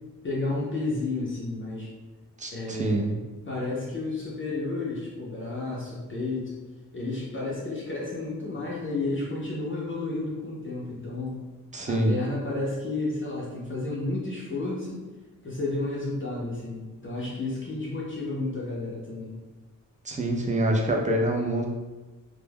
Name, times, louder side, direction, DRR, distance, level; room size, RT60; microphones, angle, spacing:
voice 1, 0.2-1.9 2.5-3.2 3.5-6.6 6.9-11.4 11.9-15.1 15.4-19.4, left 2 dB, 35° left, -6 dB, 0.5 m, -31 dB
voice 2, 2.4-3.2 11.7-12.2 20.0-21.7, right 1 dB, 25° right, 1 dB, 0.3 m, -25 dB
2.2 x 2.1 x 3.3 m, 1.2 s
wide cardioid pair, 135°, 34 cm